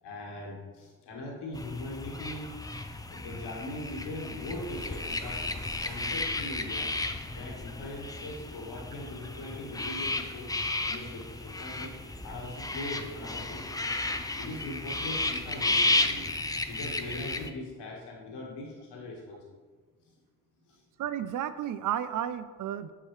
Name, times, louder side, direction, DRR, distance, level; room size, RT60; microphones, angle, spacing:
voice 1, 0.0-2.8 3.1-5.4 5.8-6.9 7.3-11.9 12.2-13.7 14.4-16.3 16.7-19.4 20.7-20.8, left 2 dB, 65° left, -2 dB, 1.6 m, -40 dB
sound 1, 1.5-17.5, left 2 dB, 10° left, 0.5 m, -33 dB
voice 2, 21.0-22.9, right 10 dB, 45° right, 13 dB, 0.5 m, -32 dB
8.2 x 4.8 x 3.2 m, 1.5 s
hypercardioid pair, 50°, 44 cm